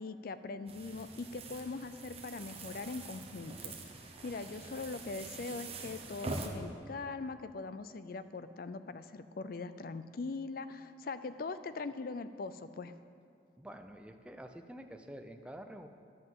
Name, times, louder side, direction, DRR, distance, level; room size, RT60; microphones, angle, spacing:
voice 1, 0.0-3.7 4.2-12.9, left 3 dB, 55° left, 12 dB, 0.4 m, -41 dB
sound 1, 0.7-6.5, right 3 dB, 35° right, 1.0 m, -45 dB
voice 2, 13.6-15.9, right 1 dB, 5° right, 6 dB, 0.5 m, -48 dB
11.5 x 5.8 x 7.6 m, 2.3 s
head